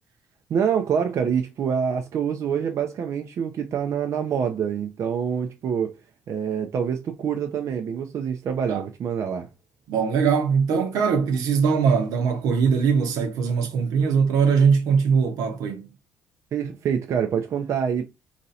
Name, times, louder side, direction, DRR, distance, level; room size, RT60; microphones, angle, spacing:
voice 1, 0.5-5.9 6.3-9.5 16.5-18.0, right 7 dB, 55° right, 0.5 m, -26 dB
voice 2, 9.9-15.9, right 6 dB, 75° right, 0.8 m, -21 dB
3.0 x 2.7 x 4.0 m
supercardioid pair, 75°, 6 cm